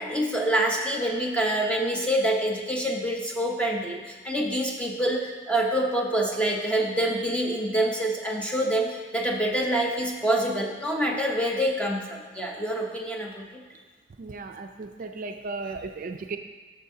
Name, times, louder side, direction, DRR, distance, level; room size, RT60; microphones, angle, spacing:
voice 1, 0.0-13.6, right 1 dB, 5° left, -1 dB, 0.8 m, -26 dB
voice 2, 14.2-16.4, right 3 dB, 45° right, 5 dB, 0.4 m, -35 dB
12.0 x 6.4 x 2.7 m, 1.4 s
head